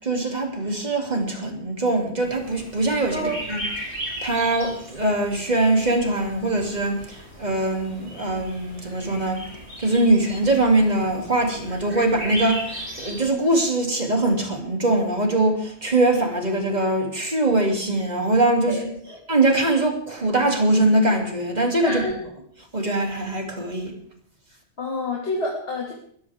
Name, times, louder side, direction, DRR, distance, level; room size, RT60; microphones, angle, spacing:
voice 1, 0.0-9.5 9.8-18.8 19.3-22.0 22.7-23.9, right 2 dB, 35° right, 1 dB, 3.0 m, -22 dB
sound 1, 2.2-13.3, equal, 55° right, 7.1 m, -37 dB
voice 2, 18.7-19.2 21.8-22.1 24.8-25.9, left 1 dB, 55° left, -2 dB, 2.6 m, -28 dB
20.5 x 14.5 x 3.6 m, 0.63 s
omnidirectional pair, 1.3 m